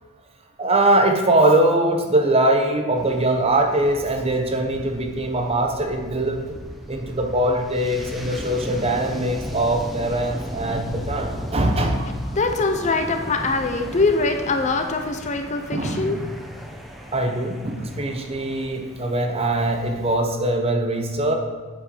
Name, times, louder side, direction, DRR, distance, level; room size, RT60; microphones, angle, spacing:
voice 1, 0.6-6.6 6.9-12.1 15.7-16.3 17.1-21.4, right 1 dB, 25° right, 4 dB, 0.9 m, -22 dB
sound 1, 3.0-20.1, equal, ahead, 0.7 m, -37 dB
voice 2, 12.4-16.2, left 3 dB, 30° left, 5 dB, 0.7 m, -23 dB
8.9 x 5.3 x 6.9 m, 1.3 s
head